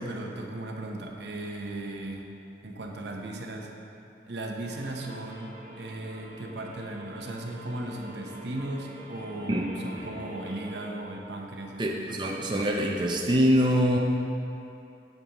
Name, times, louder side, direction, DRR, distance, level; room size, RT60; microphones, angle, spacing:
voice 1, 0.0-2.3 2.6-3.7 4.3-12.3, right 1 dB, 75° right, 1 dB, 0.8 m, -37 dB
sound 1, 4.6-10.9, equal, 40° right, 1.6 m, -45 dB
voice 2, 11.8-14.0, equal, 25° right, -1 dB, 0.5 m, -24 dB
8.9 x 7.9 x 3.0 m, 2.8 s
head